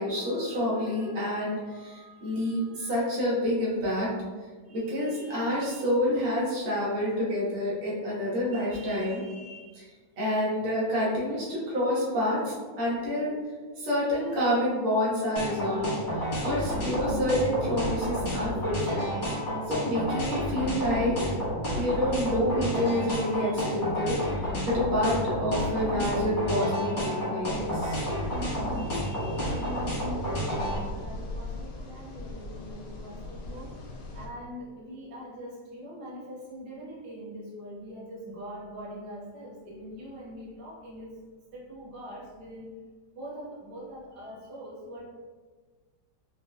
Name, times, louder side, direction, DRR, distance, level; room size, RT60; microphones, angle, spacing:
voice 1, 0.0-4.1 4.7-13.4 13.8-15.9 16.1-19.1 19.7-21.4 21.7-28.0 28.6-29.5, left 1 dB, 90° right, -6 dB, 2.1 m, -28 dB
sound 1, 15.4-30.8, equal, 30° left, 1.3 m, -30 dB
sound 2, 27.4-34.3, left 2 dB, 75° left, 0.7 m, -41 dB
voice 2, 29.3-33.8 34.1-41.2 41.5-42.7 43.1-45.1, equal, 30° right, -6 dB, 0.6 m, -43 dB
4.9 x 3.3 x 2.2 m, 1.4 s
omnidirectional pair, 2.2 m